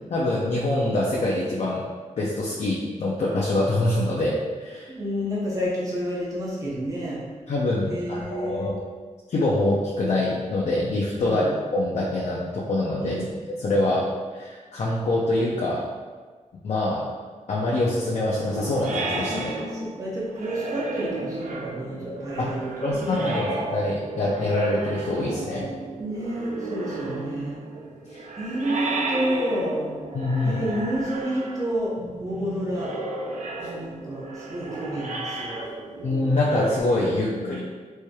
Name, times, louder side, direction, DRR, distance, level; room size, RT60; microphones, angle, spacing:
voice 1, 0.1-1.8 2.2-4.9 7.5-8.7 9.3-11.4 11.7-13.2 13.5-14.1 14.3-15.9 16.6-17.1 17.5-19.5 22.4-22.5 22.8-25.7 28.1-28.2 30.1-30.7 36.0-37.6, left 2 dB, 60° left, -6 dB, 0.5 m, -25 dB
voice 2, 4.9-7.2 7.9-8.8 11.1-11.5 13.0-13.3 19.3-23.3 26.0-27.6 28.4-29.9 30.4-31.9 32.2-32.9 33.6-35.6 37.1-37.6, equal, 25° right, -6 dB, 0.8 m, -30 dB
sound 1, 18.3-36.8, right 2 dB, 75° right, 0.4 m, -33 dB
4.2 x 3.2 x 2.3 m, 1.5 s
wide cardioid pair, 175°, 13 cm